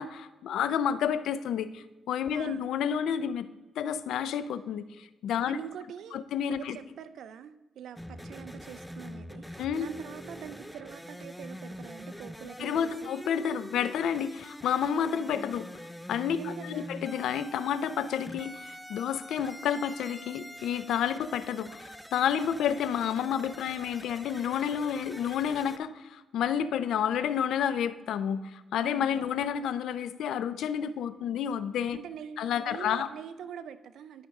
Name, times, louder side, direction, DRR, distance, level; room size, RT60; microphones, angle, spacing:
voice 1, 0.0-3.5 3.8-5.6 6.1-6.8 9.6-9.9 12.6-15.7 16.1-32.0 32.4-33.1, left 8 dB, 80° left, 14 dB, 0.5 m, -30 dB
voice 2, 2.3-2.7 5.5-6.2 6.6-13.1 16.4-16.9 28.8-29.4 31.9-34.3, right 8 dB, 75° right, 12 dB, 0.3 m, -44 dB
sound 1, 8.0-25.8, equal, ahead, 0.4 m, -45 dB
12.0 x 5.2 x 3.6 m, 1.1 s
cardioid pair, 95°, 0 cm